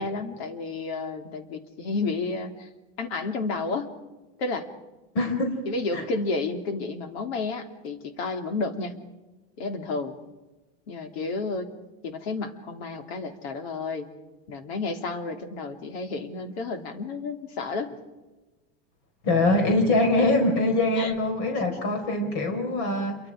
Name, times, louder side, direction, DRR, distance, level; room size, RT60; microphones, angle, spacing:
voice 1, 0.0-2.7 3.0-3.9 4.4-4.7 5.7-8.9 9.6-10.2 10.9-11.7 12.0-14.1 14.5-18.0 20.9-21.1, left 3 dB, 85° left, 6 dB, 3.2 m, -31 dB
voice 2, 5.1-5.6 5.9-6.0 19.2-23.2, left 2 dB, 60° left, 5 dB, 4.6 m, -23 dB
28.0 x 24.0 x 4.9 m, 1.2 s
supercardioid pair, 145°, 31 cm